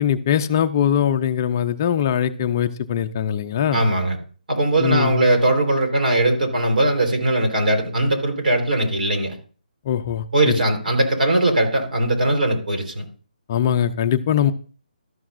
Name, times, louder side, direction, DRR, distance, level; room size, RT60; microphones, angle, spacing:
voice 1, 0.0-3.8 4.8-5.2 9.9-10.2 13.5-14.5, left 9 dB, 25° left, 8 dB, 0.4 m, -21 dB
voice 2, 3.7-4.2 4.5-9.3 10.3-13.0, right 1 dB, 70° right, 4 dB, 3.9 m, -20 dB
12.5 x 12.5 x 2.5 m, 0.39 s
hypercardioid pair, 170°, 5 cm